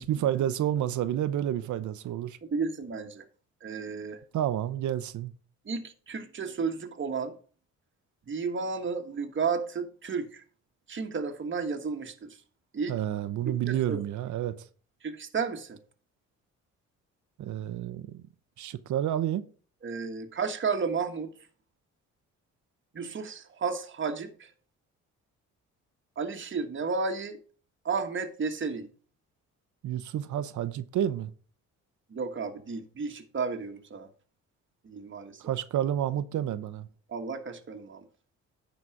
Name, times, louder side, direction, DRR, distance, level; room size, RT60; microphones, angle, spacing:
voice 1, 0.0-2.4 4.3-5.3 12.9-14.6 17.4-18.2 18.6-19.4 29.8-31.3 35.4-36.9, right 11 dB, 65° right, 0.7 m, -30 dB
voice 2, 2.4-3.2 3.6-4.2 5.6-7.3 8.3-10.4 10.9-12.4 12.7-12.9 13.4-14.0 15.0-15.8 19.8-21.3 22.9-24.5 26.2-27.4 27.8-28.9 32.1-34.1 34.8-35.4 37.1-38.1, right 5 dB, 40° right, 1.4 m, -32 dB
9.6 x 4.1 x 5.9 m
cardioid pair, 75°, 31 cm